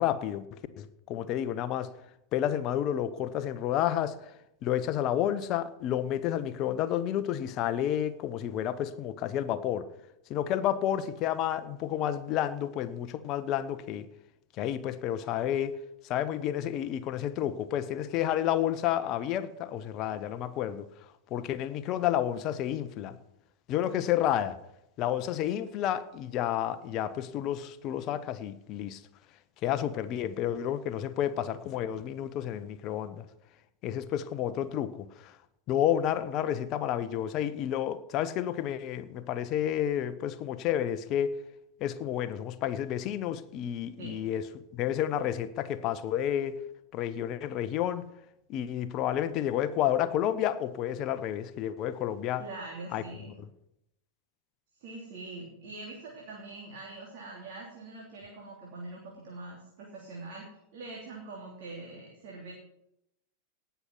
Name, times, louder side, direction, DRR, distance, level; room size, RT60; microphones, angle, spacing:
voice 1, 0.0-1.9 2.3-4.2 4.6-9.9 10.3-14.1 14.6-15.8 16.0-20.9 21.3-23.2 23.7-24.6 25.0-29.0 29.6-33.2 33.8-35.3 35.7-41.4 41.8-44.5 44.7-46.6 46.9-48.1 48.5-52.4 52.9-53.0, left 11 dB, 35° left, 12 dB, 0.9 m, -30 dB
voice 2, 52.4-53.4 54.8-62.5, right 3 dB, 50° right, -2 dB, 3.1 m, -43 dB
18.0 x 6.9 x 6.2 m, 0.83 s
figure-of-eight pair, 90°, 0 cm